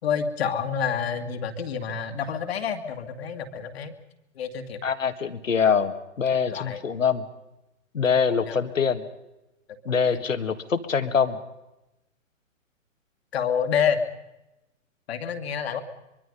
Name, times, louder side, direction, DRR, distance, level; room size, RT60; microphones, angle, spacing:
voice 1, 0.0-3.9 4.3-4.8 6.5-6.8 8.1-8.6 9.7-9.8 10.1-10.2 13.3-14.0 15.1-15.8, left 7 dB, 50° left, 7 dB, 2.2 m, -28 dB
voice 2, 4.8-7.3 7.9-9.1 9.9-11.4, left 6 dB, 75° left, 11 dB, 1.9 m, -24 dB
24.0 x 24.0 x 5.4 m, 0.94 s
figure-of-eight pair, 120°, 40 cm